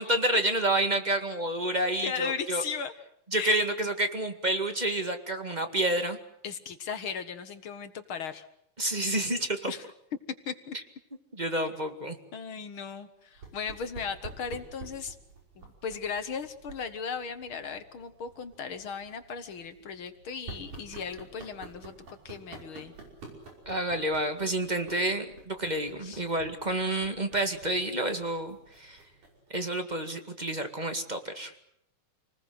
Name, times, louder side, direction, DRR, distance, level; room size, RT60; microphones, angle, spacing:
voice 1, 0.0-2.6 3.3-6.2 8.8-9.7 11.3-12.2 23.6-29.0 29.5-31.5, right 1 dB, 15° right, 7 dB, 1.7 m, -29 dB
voice 2, 1.7-2.9 3.4-3.6 6.4-8.5 9.7-9.9 10.5-10.8 12.3-15.2 15.6-22.9 26.0-26.2, left 6 dB, 50° left, 10 dB, 2.0 m, -37 dB
sound 1, 13.4-29.5, right 3 dB, 85° right, 7.0 m, -49 dB
28.5 x 20.0 x 8.0 m, 0.73 s
omnidirectional pair, 3.4 m